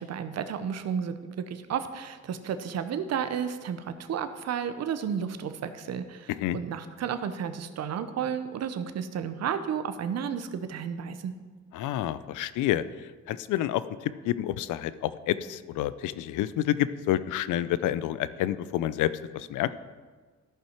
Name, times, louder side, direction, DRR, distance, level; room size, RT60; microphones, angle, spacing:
voice 1, 0.0-11.3, right 7 dB, 60° right, 10 dB, 0.8 m, -32 dB
voice 2, 11.7-12.8 13.3-19.1 19.3-19.7, left 13 dB, 85° left, 15 dB, 0.5 m, -28 dB
13.5 x 5.6 x 4.5 m, 1.4 s
cardioid pair, 90°, 30 cm